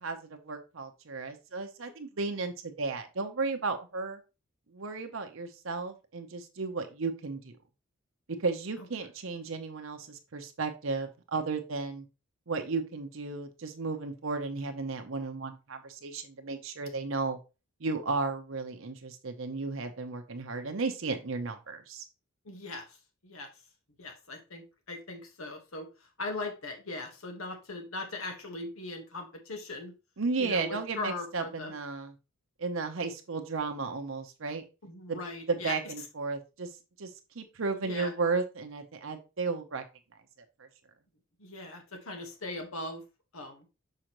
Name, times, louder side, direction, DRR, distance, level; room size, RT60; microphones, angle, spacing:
voice 1, 0.0-4.2 4.7-7.5 8.4-12.0 12.5-17.4 17.8-22.0 30.2-32.1 32.6-34.6 35.1-35.2 35.5-36.7 37.0-37.1 37.3-39.8, right 4 dB, 65° right, 6 dB, 0.8 m, -34 dB
voice 2, 22.4-23.0 23.2-23.5 24.0-29.9 30.4-31.7 34.8-35.8 37.8-38.1 41.4-43.0 43.3-43.6, left 2 dB, 80° left, 4 dB, 1.4 m, -39 dB
6.5 x 4.9 x 3.0 m, 0.29 s
head